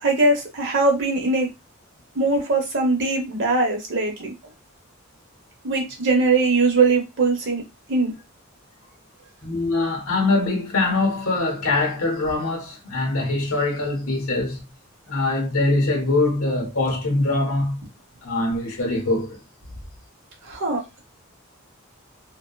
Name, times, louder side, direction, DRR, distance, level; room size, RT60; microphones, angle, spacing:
voice 1, 0.0-1.5 2.1-4.3 5.6-7.6 7.9-8.1 20.4-21.0, right 3 dB, 60° right, 0.9 m, -21 dB
voice 2, 9.4-14.6 15.1-17.8 18.2-19.4, left 2 dB, 80° left, 0.9 m, -23 dB
2.8 x 2.2 x 2.3 m
head